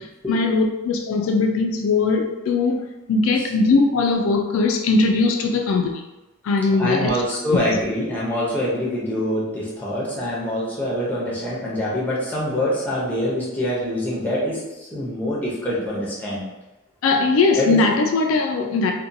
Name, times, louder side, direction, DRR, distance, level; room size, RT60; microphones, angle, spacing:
voice 1, 0.0-6.0 6.4-7.1 7.5-7.6 17.0-18.9, left 3 dB, 80° left, 0.3 m, -20 dB
voice 2, 6.7-16.5 17.5-17.8, equal, 10° left, 0.6 m, -25 dB
2.7 x 2.2 x 2.5 m
head